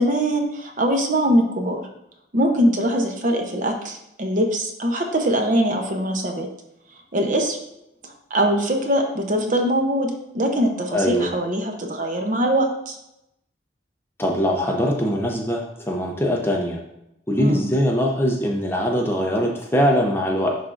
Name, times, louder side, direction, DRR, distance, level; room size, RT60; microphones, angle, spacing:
voice 1, 0.0-1.8 2.3-6.5 7.1-7.6 8.0-12.9 17.4-17.7, equal, 45° right, 3 dB, 0.8 m, -22 dB
voice 2, 10.9-11.3 14.2-16.8 17.3-20.6, equal, 15° left, 0 dB, 0.7 m, -22 dB
10.5 x 3.6 x 2.6 m, 0.83 s
head